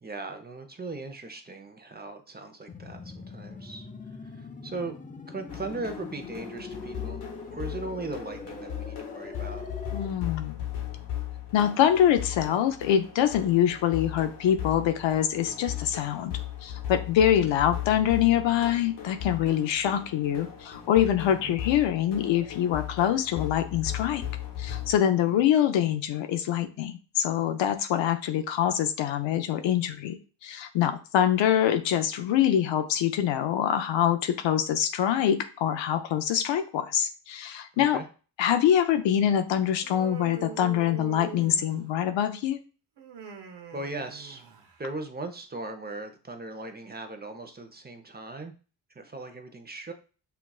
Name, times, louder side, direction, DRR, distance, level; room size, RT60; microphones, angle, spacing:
voice 1, 0.0-3.9 4.3-4.9 5.3-7.2 7.5-9.7 21.3-21.5 25.2-25.4 37.7-38.1 43.7-44.5 44.8-48.5 48.9-49.9, right 2 dB, 20° right, 6 dB, 0.8 m, -38 dB
sound 1, 2.7-10.1, left 3 dB, 20° left, 0.5 m, -42 dB
sound 2, 5.5-25.0, left 11 dB, 65° left, 1.2 m, -37 dB
voice 2, 9.9-10.6 11.5-16.3 16.6-24.2 24.6-30.2 30.4-38.0 38.4-42.6, left 10 dB, 85° left, 7 dB, 0.6 m, -25 dB
Human voice, 39.8-42.1 43.0-44.8, right 6 dB, 70° right, 0.9 m, -43 dB
5.7 x 2.4 x 2.3 m, 0.35 s
cardioid pair, 65°, 43 cm